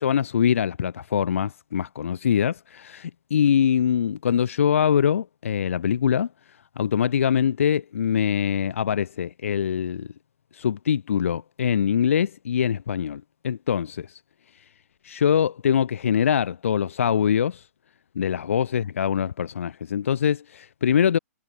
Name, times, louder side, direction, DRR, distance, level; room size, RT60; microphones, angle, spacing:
voice 1, 0.0-6.3 6.8-10.1 10.5-14.2 15.0-17.6 18.2-21.2, left 8 dB, 55° left, 2.4 m, -23 dB
figure-of-eight pair, 115°, 8 cm